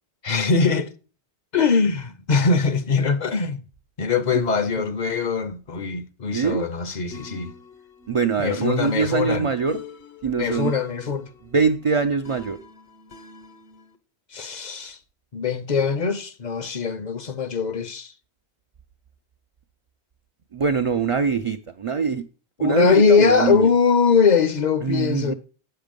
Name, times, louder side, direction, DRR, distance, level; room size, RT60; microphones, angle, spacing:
voice 1, 0.2-0.9 1.5-3.6 4.0-7.5 8.4-9.5 10.4-11.3 14.3-15.0 15.3-18.1 22.6-25.3, left 5 dB, 50° left, 0.7 m, -21 dB
voice 2, 6.3-6.6 8.1-9.8 10.2-10.7 11.5-12.6 20.5-22.2 22.6-23.7 24.8-25.3, right 5 dB, 45° right, 0.4 m, -23 dB
sound 1, 7.1-14.0, left 5 dB, 70° left, 1.2 m, -45 dB
8.1 x 6.7 x 5.1 m
omnidirectional pair, 1.1 m